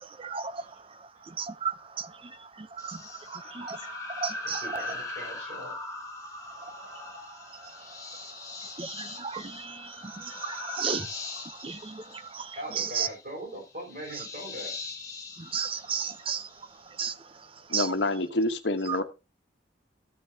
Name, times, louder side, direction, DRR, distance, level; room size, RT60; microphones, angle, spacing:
voice 1, 0.0-4.9 6.4-13.1 14.1-14.3 15.3-17.9 18.9-19.0, right 6 dB, 30° right, 0.6 m, -36 dB
sound 1, 2.8-16.6, left 3 dB, 20° left, 2.0 m, -41 dB
voice 2, 4.4-5.7 6.7-6.9 10.3-10.5 12.0-12.3 12.5-14.8, equal, 50° right, 6.4 m, -41 dB
voice 3, 17.7-19.0, left 2 dB, 80° left, 1.2 m, -27 dB
15.0 x 6.6 x 2.8 m
head